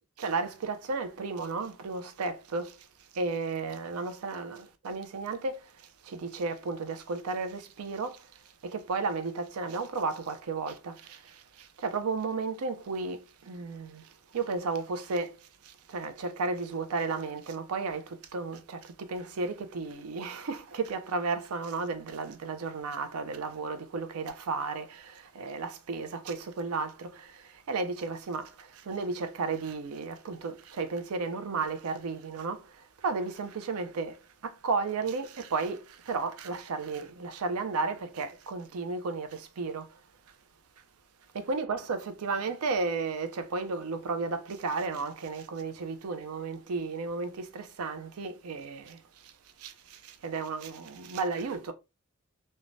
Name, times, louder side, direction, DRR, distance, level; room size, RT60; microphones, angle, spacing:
voice 1, 0.2-2.9 3.1-5.7 6.0-8.3 8.6-40.0 41.3-49.3 49.6-51.7, right 4 dB, 80° right, 0.5 m, -34 dB
3.1 x 2.1 x 2.5 m
head